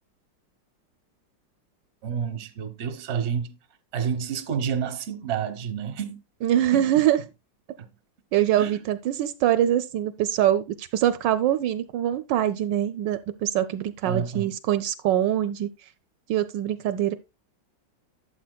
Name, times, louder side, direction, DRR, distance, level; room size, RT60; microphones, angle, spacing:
voice 1, 2.0-3.5 3.9-6.2 6.7-6.9 7.8-7.9 8.6-8.8 14.0-14.5, right 7 dB, 45° right, 1.0 m, -29 dB
voice 2, 6.4-7.2 8.3-15.7 16.3-17.2, right 11 dB, 75° right, 1.2 m, -23 dB
12.0 x 7.5 x 2.2 m
omnidirectional pair, 2.0 m